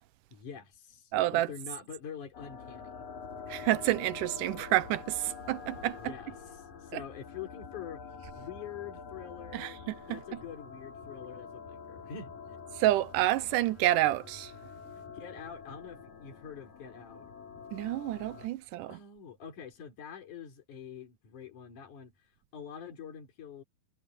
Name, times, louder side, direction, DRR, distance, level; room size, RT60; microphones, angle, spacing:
voice 1, 0.3-2.9 5.9-8.0 8.4-9.8 10.1-12.6 14.9-17.3 18.9-23.6, left 7 dB, 65° left, 5.5 m, -45 dB
voice 2, 1.1-1.5 3.5-6.1 6.9-7.0 9.5-10.4 12.8-14.5 17.7-19.0, right 15 dB, 85° right, 2.3 m, -29 dB
sound 1, 2.3-18.5, left 5 dB, 85° left, 6.0 m, -46 dB
omnidirectional pair, 3.8 m